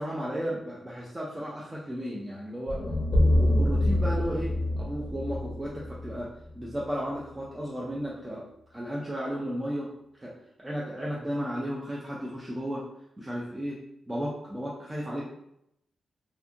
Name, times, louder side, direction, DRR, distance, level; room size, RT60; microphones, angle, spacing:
voice 1, 0.0-2.8 3.2-8.5 8.7-9.9 10.2-12.9 13.2-15.2, equal, 15° right, -5 dB, 0.3 m, -34 dB
sound 1, 2.7-6.8, left 1 dB, 40° left, 0.5 m, -26 dB
2.5 x 2.4 x 2.6 m, 0.79 s
wide cardioid pair, 170°, 0 cm